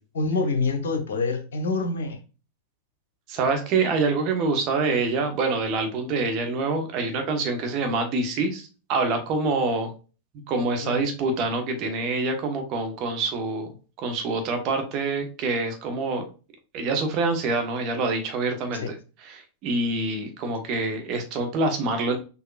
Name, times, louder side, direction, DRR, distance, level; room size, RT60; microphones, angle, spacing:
voice 1, 0.1-2.2 10.8-11.0 18.7-18.9, left 3 dB, 60° left, 0.9 m, -26 dB
voice 2, 3.3-9.9 10.5-13.7 14.0-16.2 16.7-18.9 19.2-22.2, right 3 dB, 40° right, 1.3 m, -26 dB
6.6 x 2.8 x 2.4 m
figure-of-eight pair, 90°, 0 cm